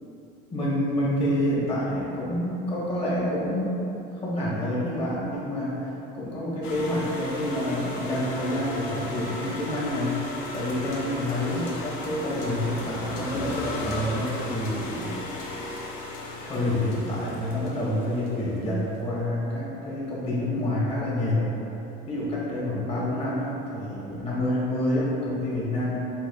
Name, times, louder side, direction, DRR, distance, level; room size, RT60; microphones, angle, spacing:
voice 1, 0.5-3.7 4.2-10.2 10.5-15.2 16.4-21.5 22.1-26.0, left 1 dB, 30° left, -7 dB, 1.3 m, -28 dB
sound 1, 6.6-18.7, left 2 dB, 70° left, 0.7 m, -35 dB
7.2 x 2.5 x 2.4 m, 2.9 s
cardioid pair, 125°, 21 cm